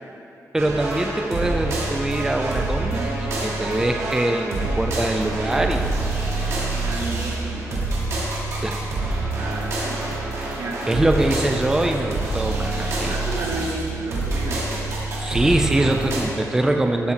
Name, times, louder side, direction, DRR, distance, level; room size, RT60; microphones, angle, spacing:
voice 1, 0.5-5.9 6.6-6.7 8.6-8.8 10.9-13.1 15.2-17.1, right 1 dB, 10° right, 4 dB, 0.4 m, -23 dB
sound 1, 0.6-16.2, right 2 dB, 55° right, 2.0 m, -26 dB
voice 2, 6.7-8.1 9.3-10.1 10.5-11.2 13.1-15.1, right 2 dB, 90° right, -3 dB, 1.8 m, -33 dB
13.0 x 6.7 x 4.2 m, 2.7 s
wide cardioid pair, 155°, 6 cm